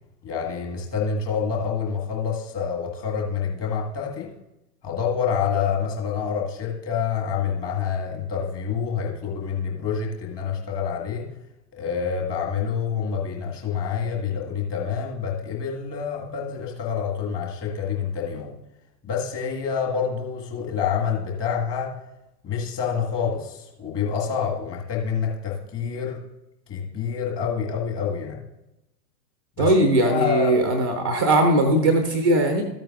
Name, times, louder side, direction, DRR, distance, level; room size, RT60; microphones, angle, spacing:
voice 1, 0.2-4.3 4.8-11.3 11.7-18.5 19.0-21.9 22.4-26.2 26.7-28.4 29.6-29.7 30.1-30.6, left 6 dB, 25° left, 0 dB, 1.8 m, -27 dB
voice 2, 29.6-32.6, right 1 dB, 15° right, 5 dB, 0.3 m, -19 dB
13.0 x 9.0 x 2.5 m, 0.91 s
figure-of-eight pair, 105°, 50 cm